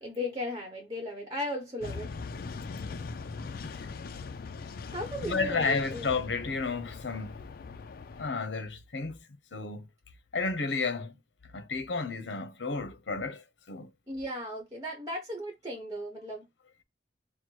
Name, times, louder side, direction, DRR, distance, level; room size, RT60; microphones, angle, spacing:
voice 1, 0.0-2.1 4.9-6.1 14.1-16.5, left 1 dB, 20° right, 1.0 m, -36 dB
sound 1, 1.8-8.3, left 4 dB, 55° left, 0.4 m, -40 dB
voice 2, 5.2-7.4 8.2-9.2 9.5-9.8 10.3-11.2 11.5-13.9, left 4 dB, 85° left, 0.8 m, -32 dB
4.5 x 2.1 x 4.4 m
head